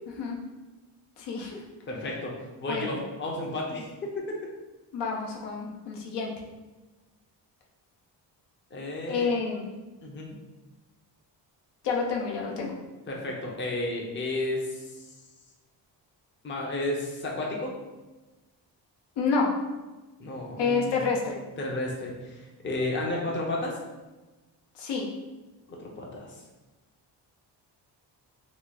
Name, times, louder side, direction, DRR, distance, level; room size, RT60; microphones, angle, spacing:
voice 1, 1.2-1.6 2.7-3.0 4.9-6.3 9.1-9.7 11.8-12.8 19.2-19.5 20.6-21.4 24.7-25.1, left 4 dB, 70° left, -1 dB, 0.8 m, -28 dB
voice 2, 1.9-4.4 8.7-9.3 10.0-10.4 13.1-15.1 16.4-17.7 20.2-20.9 21.6-23.8 25.7-26.4, left 2 dB, 25° left, -1 dB, 0.6 m, -32 dB
3.0 x 2.3 x 3.9 m, 1.2 s
cardioid pair, 105°, 42 cm